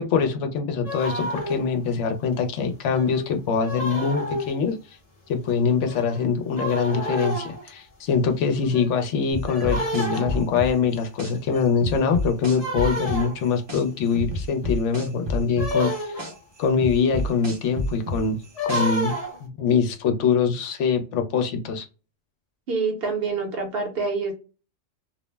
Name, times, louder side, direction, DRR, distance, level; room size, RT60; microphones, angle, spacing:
voice 1, 0.0-4.8 5.3-16.2 16.6-18.4 18.6-19.1 19.4-21.9, left 6 dB, 70° left, 5 dB, 0.8 m, -23 dB
sound 1, 0.8-1.7 2.3-2.4 2.9-4.6 5.5-5.6 5.9-6.3 6.6-7.7 8.6-9.0 9.5-10.6 11.5-11.6 12.5-13.6 15.6-16.4 18.4-19.4, equal, 40° left, 0.6 m, -30 dB
sound 2, 9.3-11.3 11.8-13.8 14.2-16.3 16.8-19.1, left 1 dB, 30° right, 0.5 m, -29 dB
voice 2, 22.7-24.3, right 4 dB, 55° right, 3 dB, 0.8 m, -26 dB
2.4 x 2.0 x 3.2 m, 0.33 s
omnidirectional pair, 1.3 m